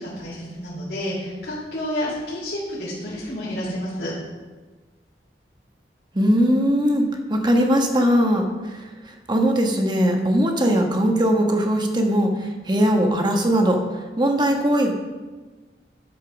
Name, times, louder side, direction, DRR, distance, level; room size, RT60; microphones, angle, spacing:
voice 1, 0.0-4.1, left 1 dB, 60° left, -9 dB, 3.3 m, -30 dB
voice 2, 6.1-7.0 7.3-13.8 14.2-14.9, equal, 25° right, 2 dB, 1.3 m, -20 dB
11.5 x 5.7 x 6.2 m, 1.3 s
head